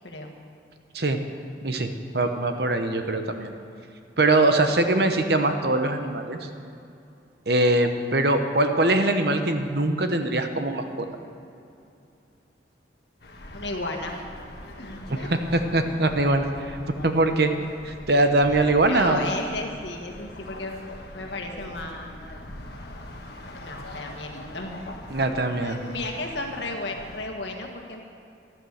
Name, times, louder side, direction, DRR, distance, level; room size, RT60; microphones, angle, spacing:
voice 1, 0.0-0.3 4.4-4.6 13.5-14.2 14.8-15.4 18.5-20.8 21.1-22.2 23.5-24.8 25.6-28.0, left 2 dB, 75° left, 2 dB, 1.7 m, -34 dB
voice 2, 2.1-3.5 4.2-6.5 7.5-10.8 15.1-15.2 15.5-16.8 17.0-17.5 17.8-19.3 25.1-25.8, right 2 dB, 60° right, 6 dB, 1.0 m, -22 dB
sound 1, 13.2-27.3, left 1 dB, 60° left, 1.4 m, -42 dB
12.5 x 11.0 x 6.6 m, 2.7 s
head